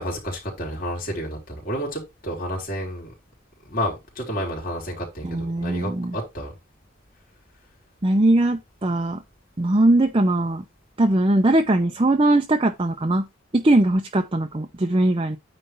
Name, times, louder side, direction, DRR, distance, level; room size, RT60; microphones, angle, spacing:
voice 1, 0.0-3.1 3.7-6.5, equal, 45° left, 3.5 m, -30 dB
voice 2, 5.2-6.2 8.0-9.2 9.6-10.6 11.0-13.2 13.5-15.4, right 1 dB, 30° right, 0.7 m, -20 dB
9.3 x 3.3 x 5.6 m
head